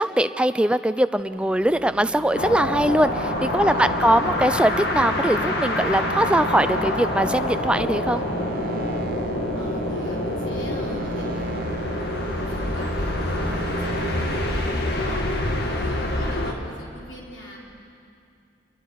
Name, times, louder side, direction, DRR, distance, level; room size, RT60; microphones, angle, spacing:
voice 1, 0.0-8.2, right 1 dB, 5° right, 11 dB, 0.4 m, -21 dB
sound 1, 1.2-14.6, right 3 dB, 50° right, 0.9 m, -36 dB
sound 2, 2.3-16.5, left 1 dB, 55° left, 1.9 m, -26 dB
voice 2, 3.6-4.0 9.5-12.1 12.4-14.4 14.9-15.2 15.6-17.6, left 1 dB, 85° left, -4 dB, 4.2 m, -42 dB
28.0 x 21.5 x 4.8 m, 2.5 s
head